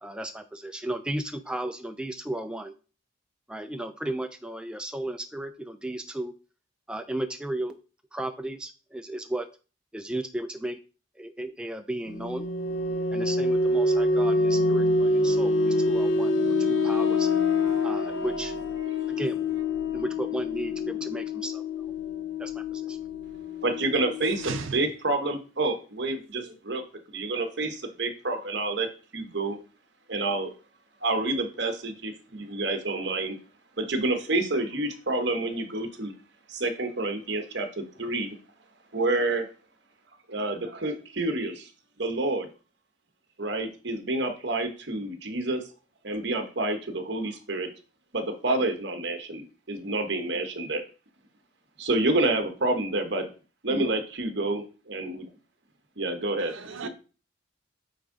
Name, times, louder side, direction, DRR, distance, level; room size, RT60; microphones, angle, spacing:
voice 1, 0.0-2.7 3.5-6.3 6.9-7.8 8.1-9.5 9.9-10.8 11.2-12.5 13.1-16.6 16.8-17.3 17.8-18.5 19.2-19.4 19.9-21.6 22.4-23.0, right 1 dB, 5° right, 0.3 m, -34 dB
sound 1, 12.1-24.6, left 2 dB, 75° left, 0.7 m, -26 dB
voice 2, 23.6-26.8 27.1-28.9 29.1-29.6 30.1-30.5 31.0-33.4 33.8-36.1 36.5-38.4 38.9-39.4 40.3-41.7 42.0-42.5 43.4-45.6 46.0-47.7 48.1-50.8 51.8-53.3 53.6-55.3 56.0-56.5 56.8-56.9, right 2 dB, 60° right, 1.1 m, -28 dB
voice 3, 24.4-24.8 26.5-26.6 56.4-56.9, right 4 dB, 80° right, 0.7 m, -36 dB
9.0 x 3.6 x 3.9 m
head